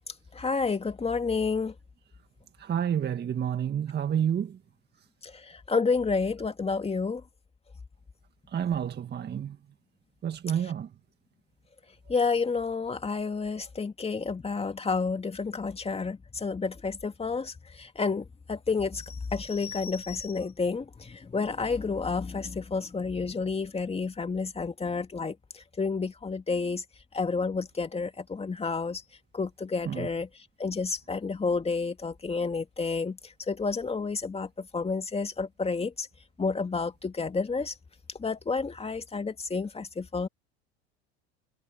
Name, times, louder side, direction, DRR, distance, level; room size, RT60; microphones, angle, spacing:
voice 1, 0.3-1.7 5.2-7.2 12.1-26.8 27.1-29.0 29.3-30.3 30.6-33.2 33.5-36.1 36.4-37.7 38.2-40.3, left 4 dB, 20° left, 2.4 m, -30 dB
voice 2, 2.6-4.6 8.5-9.6 10.2-10.9 29.8-30.1, right 9 dB, 30° right, 1.7 m, -29 dB
hypercardioid pair, 90°, 33 cm